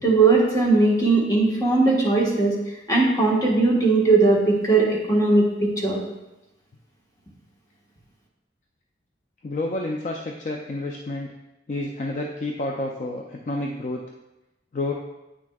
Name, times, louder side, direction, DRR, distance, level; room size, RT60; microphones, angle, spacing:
voice 1, 0.0-2.6 2.9-6.0, right 3 dB, 20° left, -4 dB, 1.3 m, -19 dB
voice 2, 9.4-11.3 11.7-14.0 14.7-14.9, left 2 dB, 40° left, 1 dB, 0.4 m, -29 dB
8.4 x 6.0 x 2.3 m, 0.97 s
head